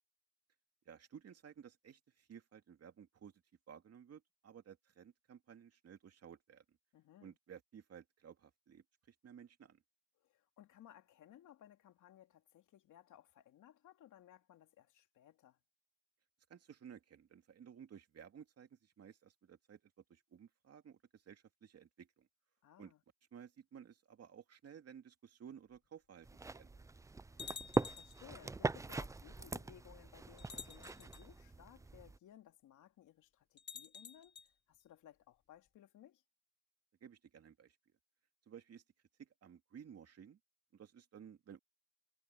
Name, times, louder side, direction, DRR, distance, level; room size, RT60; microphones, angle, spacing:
voice 1, 0.9-3.3 3.7-6.8 7.2-9.8 16.5-19.8 20.1-22.3 22.8-22.9 23.3-26.8 37.0-37.8 38.5-38.8 39.2-40.4 40.7-41.6, right 8 dB, 55° right, 2.7 m, -56 dB
voice 2, 6.9-7.4 10.2-15.6 22.6-23.0 27.3-36.2, left 11 dB, 80° left, 3.1 m, -61 dB
sound 1, 25.7-25.8 26.6-26.7 27.4-28.2 29.4-29.5 30.4-31.2 33.6-34.5, left 6 dB, 35° left, 0.8 m, -50 dB
sound 2, 26.2-32.2, right 3 dB, 10° right, 0.4 m, -41 dB
cardioid pair, 90°, 30 cm